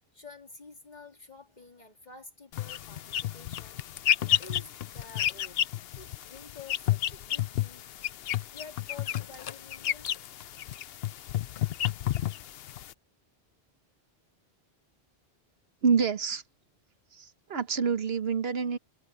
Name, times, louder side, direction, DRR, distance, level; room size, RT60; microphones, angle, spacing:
voice 1, 0.1-3.8 4.4-5.6 5.9-7.9 8.5-10.1, left 4 dB, 45° left, 3.0 m, -49 dB
sound 1, 2.5-12.9, left 11 dB, 75° left, 0.8 m, -31 dB
voice 2, 15.8-16.4 17.1-18.8, right 5 dB, 75° right, 1.3 m, -27 dB
omnidirectional pair, 1.1 m